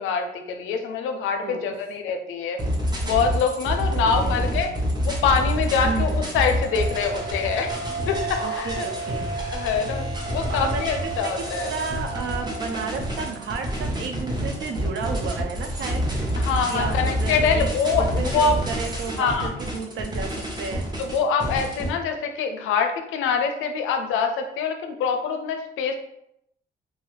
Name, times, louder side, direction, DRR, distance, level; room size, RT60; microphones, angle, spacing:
voice 1, 0.0-2.6 3.0-4.7 5.0-7.7 8.1-8.9 9.5-11.7 16.4-18.6 19.2-19.5 21.0-26.0, left 5 dB, 90° left, 6 dB, 0.5 m, -25 dB
voice 2, 1.4-1.7 3.9-4.4 5.8-6.2 8.4-9.3 10.5-16.1 16.7-17.7 18.0-20.9, right 5 dB, 75° right, 5 dB, 0.5 m, -32 dB
sound 1, 2.6-21.9, equal, 20° right, 0.8 m, -28 dB
sound 2, 6.6-13.7, right 4 dB, 10° left, 0.5 m, -35 dB
2.6 x 2.3 x 3.2 m, 0.77 s
cardioid pair, 90°, 20 cm